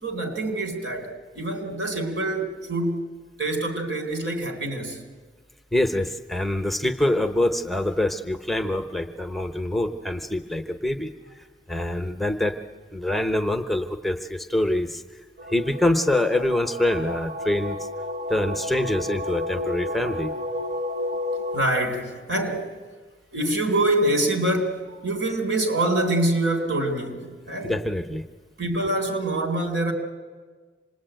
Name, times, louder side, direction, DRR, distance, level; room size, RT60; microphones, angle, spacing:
voice 1, 0.0-3.1 3.4-5.0 18.2-18.3 21.5-22.7 23.3-27.8 28.6-29.9, right 1 dB, 80° right, 5 dB, 3.7 m, -25 dB
voice 2, 5.7-11.1 11.7-12.6 12.9-15.0 15.5-17.9 18.3-20.3 27.6-28.3, left 1 dB, ahead, 7 dB, 0.8 m, -25 dB
sound 1, 15.4-21.6, left 1 dB, 60° right, 1.4 m, -31 dB
26.5 x 20.5 x 9.1 m, 1.5 s
head